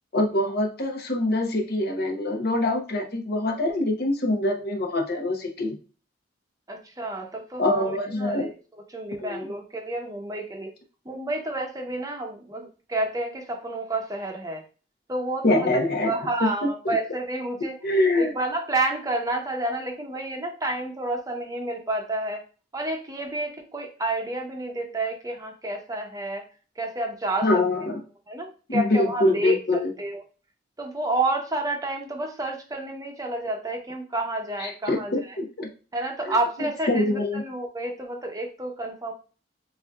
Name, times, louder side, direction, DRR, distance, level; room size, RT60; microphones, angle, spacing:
voice 1, 0.1-5.8 7.6-8.5 9.2-9.5 15.4-16.1 16.4-17.0 17.8-18.3 27.4-28.0 28.7-29.9 34.6-35.7 36.3-36.4 36.9-37.4, left 2 dB, 60° left, 2 dB, 0.9 m, -24 dB
voice 2, 6.7-8.5 8.9-10.7 11.0-14.6 15.1-17.8 18.2-22.4 22.7-26.4 26.8-27.5 28.3-30.2 30.8-35.4 35.9-39.1, right 2 dB, 20° right, 2 dB, 0.8 m, -30 dB
7.4 x 2.7 x 2.3 m, 0.35 s
head